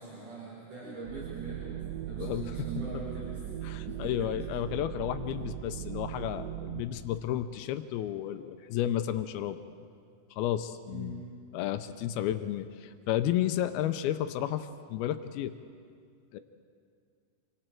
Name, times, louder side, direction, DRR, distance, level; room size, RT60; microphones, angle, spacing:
voice 1, 0.0-3.4 3.8-4.3 10.9-11.2, right 3 dB, 55° right, -8 dB, 5.3 m, -42 dB
sound 1, 1.0-6.8, right 11 dB, 75° right, 1.6 m, -39 dB
voice 2, 3.6-9.6 10.3-11.2 11.5-15.5 16.3-16.4, left 11 dB, 85° left, 9 dB, 2.6 m, -32 dB
28.0 x 25.5 x 4.5 m, 2.2 s
omnidirectional pair, 4.4 m